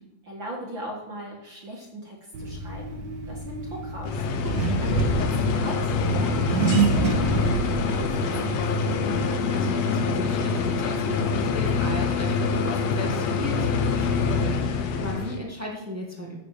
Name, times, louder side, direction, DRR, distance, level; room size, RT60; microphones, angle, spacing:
voice 1, 0.2-4.5 4.8-8.8, equal, 40° right, -2 dB, 2.1 m, -39 dB
Accelerating revving vroom, 2.3-9.7, right 5 dB, 75° right, 3.2 m, -28 dB
sound 1, 4.0-15.4, left 4 dB, 70° left, 1.6 m, -25 dB
voice 2, 4.4-4.9 9.0-16.4, equal, 20° right, -2 dB, 0.4 m, -36 dB
15.5 x 7.1 x 4.9 m, 1.0 s
omnidirectional pair, 4.2 m